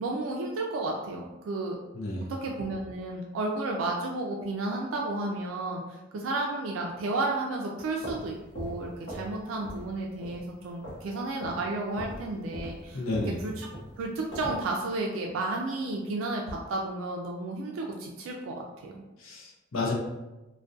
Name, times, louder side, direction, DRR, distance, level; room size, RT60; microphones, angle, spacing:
voice 1, 0.0-1.8 2.3-13.0 13.4-13.7 14.0-19.0, right 2 dB, 80° right, 0 dB, 0.3 m, -32 dB
voice 2, 1.9-2.3 12.9-13.4 19.2-19.9, left 2 dB, 90° left, -1 dB, 0.6 m, -31 dB
sound 1, 7.8-9.4 9.6-9.9 10.2-11.1 11.4-11.6 12.0-14.7, equal, 55° left, 0.8 m, -40 dB
2.3 x 2.2 x 2.5 m, 1.0 s
head